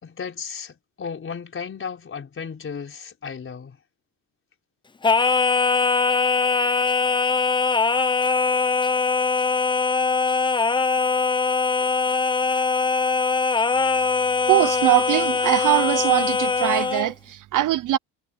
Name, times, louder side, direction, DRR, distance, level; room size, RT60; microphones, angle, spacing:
voice 1, 0.0-3.8, left 6 dB, 30° left, 4.9 m, -34 dB
Singing, 5.0-17.1, left 4 dB, 10° left, 0.7 m, -21 dB
voice 2, 14.5-18.0, right 14 dB, 50° right, 0.7 m, -21 dB
cardioid pair, 125°, 41 cm